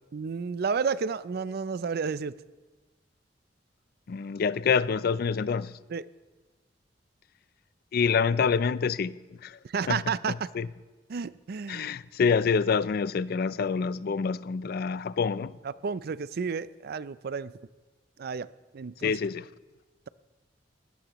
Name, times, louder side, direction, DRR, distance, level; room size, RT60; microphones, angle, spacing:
voice 1, 0.1-2.3 5.9-6.1 9.6-10.5 11.1-11.9 15.6-17.5 18.2-19.2, right 5 dB, 60° right, 0.4 m, -31 dB
voice 2, 4.1-5.7 7.9-9.6 9.9-10.0 10.3-10.7 11.7-15.6 19.0-19.5, left 5 dB, 55° left, 0.4 m, -27 dB
21.5 x 16.5 x 3.0 m
head